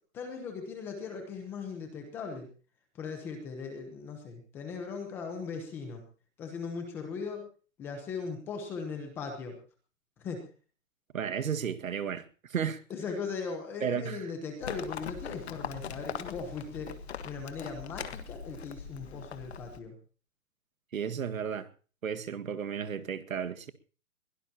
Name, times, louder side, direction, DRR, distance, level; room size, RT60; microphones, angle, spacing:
voice 1, 0.1-2.5 2.9-6.0 6.4-7.4 7.8-9.6 10.2-10.5 12.9-16.9 17.2-19.9, left 5 dB, 5° left, 0.9 m, -39 dB
voice 2, 11.1-12.8 13.8-14.2 20.9-21.7 22.0-23.7, right 7 dB, 75° right, 1.9 m, -33 dB
Livestock farm animals working animals, 14.6-19.8, left 7 dB, 50° left, 1.7 m, -41 dB
22.5 x 17.0 x 2.9 m
hypercardioid pair, 175°, 41 cm